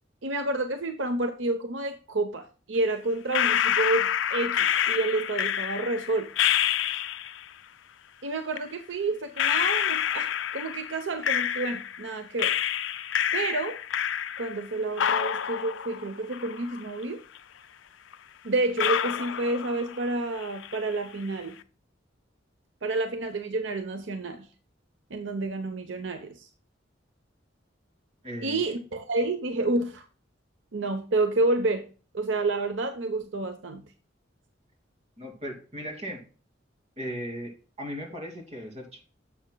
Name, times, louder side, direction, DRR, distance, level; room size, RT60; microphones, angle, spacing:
voice 1, 0.2-6.3 8.2-12.6 13.3-13.8 14.4-17.2 18.4-21.6 22.8-24.5 25.1-26.5 28.4-30.1 30.7-31.9 32.1-33.9, right 2 dB, 75° right, 7 dB, 0.8 m, -29 dB
sound 1, 3.3-7.4 8.5-8.6 9.4-12.1 12.4-14.7 15.0-17.0 17.3-17.4 18.1-18.2 18.8-20.1 20.4-20.9, left 9 dB, 75° left, 0.5 m, -28 dB
voice 2, 28.2-28.6 35.2-36.2 37.0-39.0, equal, 35° right, 1 dB, 2.7 m, -37 dB
11.0 x 7.2 x 2.2 m, 0.36 s
head